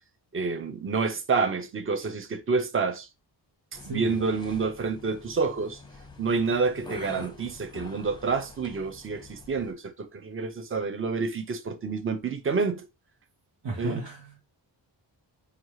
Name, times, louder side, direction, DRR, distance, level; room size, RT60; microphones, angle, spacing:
voice 1, 0.3-3.1 3.7-5.8 6.2-12.9 13.8-14.0, right 4 dB, 30° right, 0.5 m, -28 dB
sound 1, 3.7-9.7, left 2 dB, 10° left, 0.7 m, -46 dB
voice 2, 3.8-4.2 13.6-14.5, right 2 dB, 75° right, 1.1 m, -35 dB
5.0 x 2.4 x 3.0 m
wide cardioid pair, 140°, 44 cm